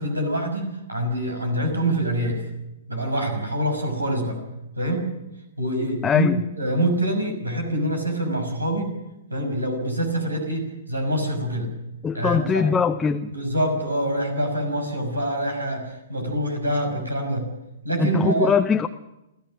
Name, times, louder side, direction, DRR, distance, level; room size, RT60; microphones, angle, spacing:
voice 1, 0.0-2.4 2.9-4.4 4.8-5.1 5.6-8.9 9.3-11.7 12.1-12.7 13.3-17.5 17.8-18.6, right 1 dB, 90° right, 5 dB, 5.9 m, -25 dB
voice 2, 6.0-6.4 12.0-13.3 18.0-18.9, left 6 dB, 15° left, 7 dB, 0.7 m, -21 dB
28.5 x 15.0 x 6.4 m, 0.94 s
figure-of-eight pair, 115°, 0 cm